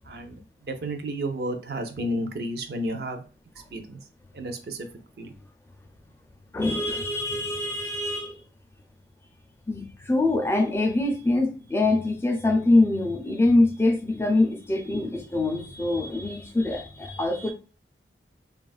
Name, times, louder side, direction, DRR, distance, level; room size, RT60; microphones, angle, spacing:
voice 1, 0.1-0.4 0.7-3.2 3.7-4.0 4.3-4.9 5.2-5.3, right 1 dB, 60° right, 6 dB, 0.5 m, -31 dB
voice 2, 6.5-8.4 9.7-17.5, left 2 dB, 15° left, 3 dB, 0.4 m, -24 dB
3.3 x 2.3 x 2.3 m, 0.37 s
head